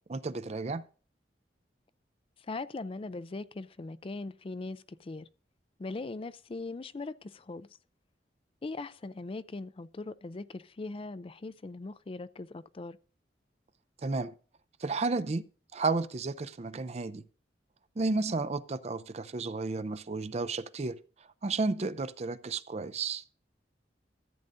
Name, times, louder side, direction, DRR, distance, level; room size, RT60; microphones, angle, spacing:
voice 1, 0.1-0.8 14.0-14.3 14.8-15.4 15.7-17.2 18.0-21.0 21.4-23.2, right 3 dB, 35° right, 0.5 m, -32 dB
voice 2, 2.4-5.3 5.8-7.7 8.6-13.0, left 3 dB, 30° left, 0.4 m, -40 dB
14.0 x 8.9 x 2.6 m
head